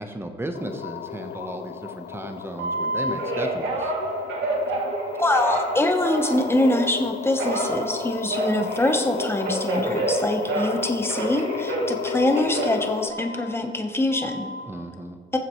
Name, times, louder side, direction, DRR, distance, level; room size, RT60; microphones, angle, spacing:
voice 1, 0.0-3.9 14.7-15.2, right 1 dB, 10° right, 6 dB, 1.1 m, -34 dB
sound 1, 0.5-13.1, left 10 dB, 60° left, 0.4 m, -35 dB
Telephone, 2.6-6.9 7.4-10.8 11.1-13.6 14.1-14.6, right 2 dB, 75° right, 2.0 m, -28 dB
voice 2, 5.2-14.5 15.3-15.4, left 1 dB, 10° left, 4 dB, 1.1 m, -24 dB
19.5 x 7.4 x 3.2 m, 2.2 s
cardioid pair, 90°, 20 cm